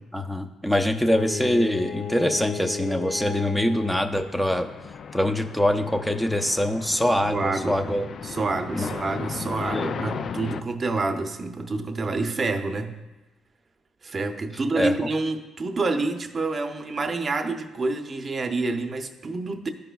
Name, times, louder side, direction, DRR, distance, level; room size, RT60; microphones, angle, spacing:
voice 1, 0.1-4.7 5.1-8.1 8.7-8.9 9.6-9.9 14.8-15.1, left 1 dB, 5° left, 6 dB, 0.6 m, -24 dB
Bowed string instrument, 1.0-4.3, left 5 dB, 80° left, 1.5 m, -34 dB
sound 1, 2.8-10.6, left 6 dB, 55° left, 0.3 m, -37 dB
voice 2, 7.3-8.0 8.2-12.9 14.0-19.7, right 3 dB, 35° right, 6 dB, 0.7 m, -28 dB
12.5 x 5.0 x 2.3 m, 1.1 s
cardioid pair, 90°, 0 cm